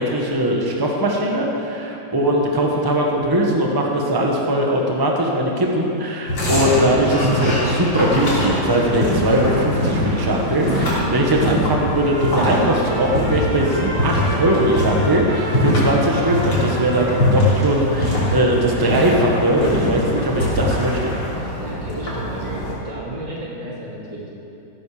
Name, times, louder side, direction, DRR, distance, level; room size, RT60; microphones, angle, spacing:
voice 1, 0.0-21.1, right 1 dB, 15° right, 0 dB, 1.4 m, -20 dB
sound 1, 6.3-22.7, left 1 dB, 90° left, 4.1 m, -22 dB
Trumpet, 11.0-18.1, equal, 30° right, 2.9 m, -33 dB
voice 2, 21.4-24.3, right 1 dB, 85° right, -5 dB, 3.6 m, -32 dB
15.5 x 12.5 x 5.1 m, 2.7 s
omnidirectional pair, 1.9 m